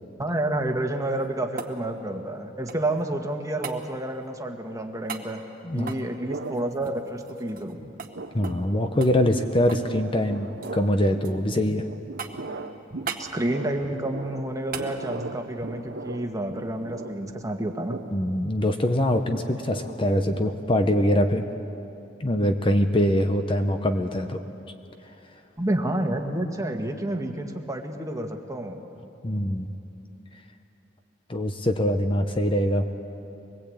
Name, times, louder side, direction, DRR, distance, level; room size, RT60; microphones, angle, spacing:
voice 1, 0.2-5.4 5.7-7.8 11.5-11.6 12.9-18.0 25.6-28.8, right 1 dB, 20° right, 3 dB, 1.6 m, -29 dB
sound 1, 1.0-3.0 3.6-3.8 5.1-5.3 5.8-7.7 8.0-8.1 8.4-8.7 9.0-9.9 10.2-10.8 11.2-11.8 12.2-12.6 13.1-13.3 14.7-14.9 17.3-17.4, right 6 dB, 50° right, 1.6 m, -38 dB
voice 2, 5.6-6.0 8.3-11.9 18.1-21.4 22.2-24.4 29.2-29.7 31.3-32.8, left 1 dB, 30° left, 6 dB, 0.9 m, -23 dB
sound 2, 6.3-7.5 7.8-21.0, right 2 dB, 70° right, 1.0 m, -40 dB
23.0 x 21.0 x 8.6 m, 2.8 s
head